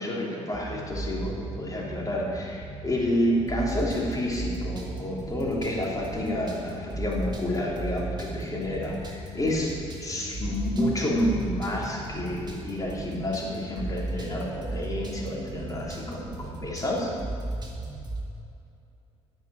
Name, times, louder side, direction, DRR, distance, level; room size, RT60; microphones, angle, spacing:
voice 1, 0.0-17.1, left 1 dB, 20° left, -3 dB, 3.1 m, -29 dB
sound 1, 0.5-18.3, right 2 dB, 25° right, 2.1 m, -36 dB
9.6 x 8.2 x 9.3 m, 2.6 s
figure-of-eight pair, 50°, 16 cm